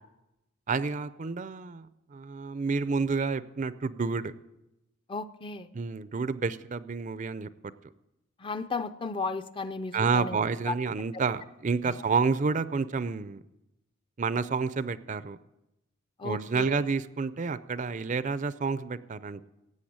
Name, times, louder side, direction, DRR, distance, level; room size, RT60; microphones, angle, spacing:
voice 1, 0.7-4.3 5.7-7.5 9.9-13.4 14.2-15.4 16.2-19.5, right 4 dB, 40° right, 15 dB, 0.5 m, -29 dB
voice 2, 5.1-5.7 8.4-10.4 10.7-10.8 11.8-12.0 16.2-16.8, left 4 dB, 25° left, 11 dB, 0.5 m, -34 dB
16.5 x 8.5 x 8.6 m, 0.94 s
head